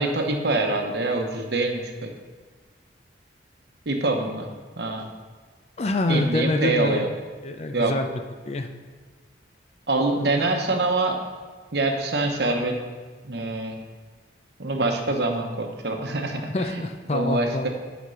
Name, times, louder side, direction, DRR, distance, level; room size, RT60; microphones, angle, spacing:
voice 1, 0.0-2.1 3.9-4.5 4.8-5.1 6.1-7.1 7.7-7.9 9.9-11.2 11.7-12.7 13.2-13.8 14.6-16.8 17.1-17.7, right 2 dB, 60° right, 3 dB, 1.0 m, -25 dB
voice 2, 5.8-7.0 7.4-8.7 16.5-17.7, left 2 dB, 35° left, 7 dB, 0.5 m, -26 dB
8.1 x 5.1 x 5.6 m, 1.4 s
head